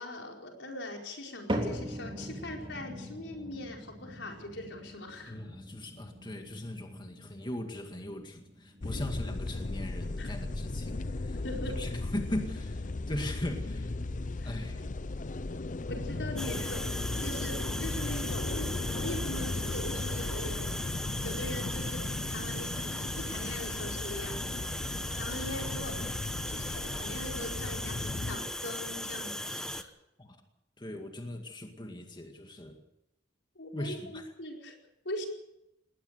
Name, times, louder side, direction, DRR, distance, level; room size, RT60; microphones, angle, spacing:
voice 1, 0.0-5.4 8.9-9.0 10.2-10.3 11.4-11.8 14.4-14.6 15.9-16.9 17.2-20.7 21.2-24.4 25.1-26.2 26.5-29.9 33.5-34.8 35.0-35.3, left 1 dB, 85° left, 1 dB, 4.8 m, -41 dB
sound 1, 1.5-17.8 18.1-18.6 19.2-19.3 20.2-20.3, equal, 30° right, 3.6 m, -43 dB
voice 2, 5.3-11.4 11.8-14.0 14.4-14.8 30.2-30.4 30.8-32.8 33.7-34.3, left 1 dB, 25° left, 4 dB, 2.1 m, -39 dB
sound 2, 8.8-28.4, left 2 dB, 45° left, 0.7 m, -36 dB
sound 3, 16.4-29.8, left 1 dB, 5° left, 1.1 m, -38 dB
20.5 x 19.0 x 6.8 m, 0.86 s
head